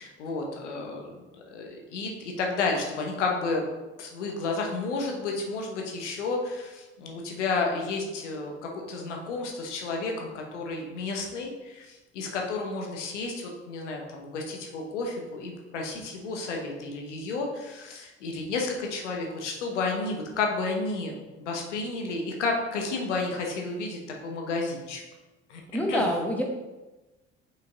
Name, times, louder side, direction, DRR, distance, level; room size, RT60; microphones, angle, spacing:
voice 1, 0.0-3.6 4.0-25.0 25.5-25.6 25.9-26.1, left 3 dB, 85° left, 1 dB, 1.0 m, -31 dB
voice 2, 25.7-26.4, equal, 5° left, 0 dB, 1.5 m, -26 dB
5.5 x 5.0 x 3.8 m, 1.1 s
hypercardioid pair, 55°, 35 cm